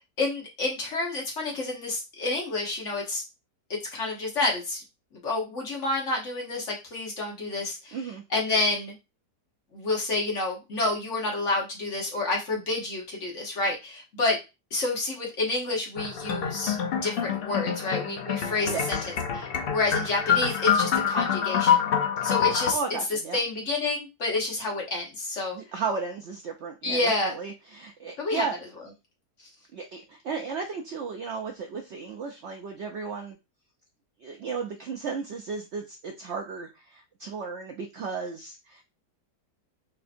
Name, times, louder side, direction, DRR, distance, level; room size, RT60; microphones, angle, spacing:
voice 1, 0.2-3.2 3.7-4.8 5.1-8.0 8.3-8.9 9.7-14.4 14.7-16.8 17.0-19.0 19.3-21.8 22.2-22.8 23.1-25.6 26.8-27.3 28.2-28.4, left 2 dB, 50° left, -1 dB, 1.3 m, -29 dB
voice 2, 7.9-8.2 18.7-19.1 22.2-22.3 22.7-23.4 25.5-28.6 29.7-33.4 34.2-38.8, right 5 dB, 90° right, 3 dB, 0.6 m, -34 dB
sound 1, 16.0-22.7, left 8 dB, 85° left, 0.5 m, -26 dB
4.2 x 2.8 x 2.5 m, 0.25 s
omnidirectional pair, 1.8 m